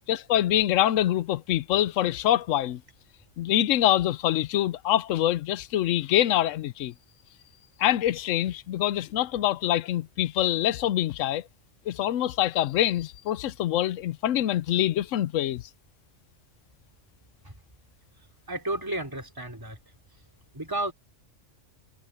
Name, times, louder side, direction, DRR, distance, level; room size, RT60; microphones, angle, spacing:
voice 1, 0.1-2.8 3.4-6.9 7.8-11.4 11.9-15.6, left 12 dB, 85° left, 1.0 m, -25 dB
voice 2, 18.5-19.8 20.5-20.9, right 1 dB, 15° right, 3.3 m, -32 dB
omnidirectional pair, 1.3 m